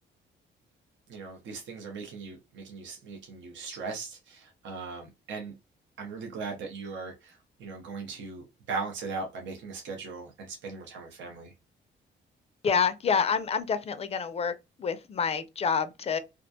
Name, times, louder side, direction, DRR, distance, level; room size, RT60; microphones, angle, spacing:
voice 1, 1.1-5.5 6.0-11.5, right 4 dB, 70° right, 0.7 m, -39 dB
voice 2, 12.6-14.5 14.8-16.2, left 6 dB, 30° left, 0.4 m, -27 dB
2.4 x 2.1 x 2.6 m
cardioid pair, 90°, 20 cm